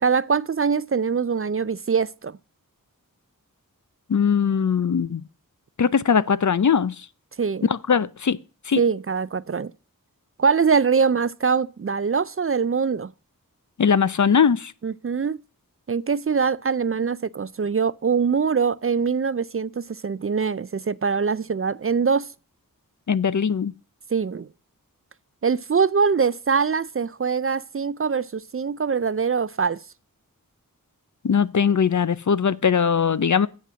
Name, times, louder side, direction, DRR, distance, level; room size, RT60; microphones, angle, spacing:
voice 1, 0.0-2.4 7.4-7.7 8.8-9.7 10.4-13.1 14.8-15.4 15.9-22.3 24.1-24.5 25.4-29.8, right 5 dB, 40° right, 0.4 m, -23 dB
voice 2, 4.1-5.2 5.8-7.0 7.6-8.4 8.7-8.8 13.8-14.7 23.1-23.7 31.2-33.5, left 6 dB, 55° left, 0.6 m, -20 dB
8.3 x 7.8 x 6.1 m
wide cardioid pair, 55°, 34 cm